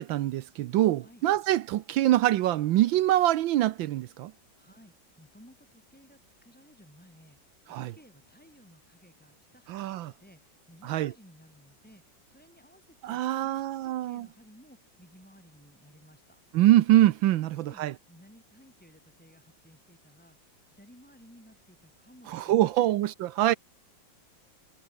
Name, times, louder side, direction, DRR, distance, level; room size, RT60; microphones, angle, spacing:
voice 1, 0.0-4.3 7.7-7.9 9.7-10.1 10.9-11.1 13.0-14.3 16.5-17.9 22.3-23.5, right 14 dB, 80° right, 1.5 m, -24 dB
voice 2, 4.6-7.4 7.6-16.4 17.4-23.0, equal, 5° left, 6.5 m, -57 dB
omnidirectional pair, 2.1 m